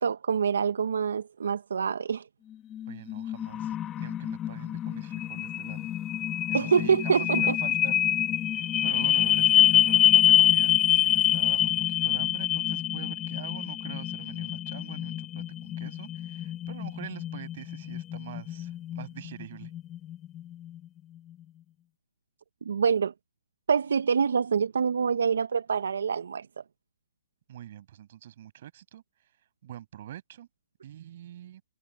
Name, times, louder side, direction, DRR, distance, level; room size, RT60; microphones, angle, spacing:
voice 1, 0.0-2.2 6.5-7.5 22.6-23.1 23.7-26.5, right 6 dB, 75° right, 0.9 m, -26 dB
sound 1, 2.7-20.8, left 11 dB, 15° left, 2.0 m, -26 dB
voice 2, 2.9-5.9 6.5-19.7 27.5-29.0 29.6-30.5 30.8-31.6, right 11 dB, 45° right, 7.4 m, -45 dB
hypercardioid pair, 160°, 0 cm